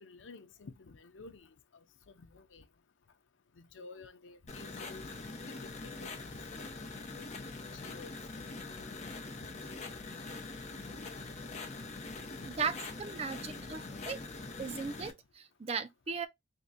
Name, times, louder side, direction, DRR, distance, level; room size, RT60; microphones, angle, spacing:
voice 1, 0.0-1.5 2.2-2.6 3.6-5.1 5.5-6.1 6.6-7.2 7.7-8.1 9.4-9.5, left 3 dB, 90° left, 0.6 m, -52 dB
sound 1, 4.5-15.1, left 3 dB, 35° left, 0.7 m, -43 dB
Glass, 8.4-12.2 12.5-13.1 13.5-14.1 14.6-14.9, left 6 dB, 60° right, 1.6 m, -64 dB
voice 2, 12.6-14.2 14.6-16.3, right 5 dB, 35° right, 0.4 m, -37 dB
3.7 x 2.2 x 4.0 m
head